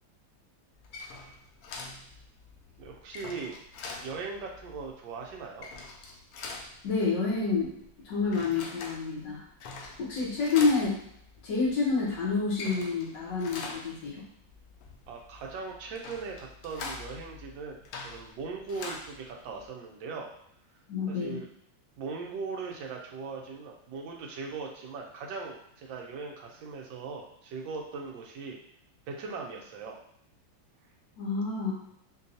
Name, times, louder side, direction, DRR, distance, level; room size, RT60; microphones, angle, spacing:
sound 1, 0.7-19.7, left 3 dB, 80° left, 0.8 m, -44 dB
voice 1, 2.8-3.6 4.0-5.7 15.1-20.3 21.1-21.5 22.0-28.6 29.1-30.0, right 4 dB, 80° right, 0 dB, 1.3 m, -39 dB
voice 2, 6.8-7.7 8.0-9.4 9.8-11.0 11.4-14.2 20.9-21.4 31.2-31.7, left 4 dB, 65° left, -6 dB, 1.7 m, -28 dB
4.5 x 2.3 x 2.7 m, 0.72 s
omnidirectional pair, 2.1 m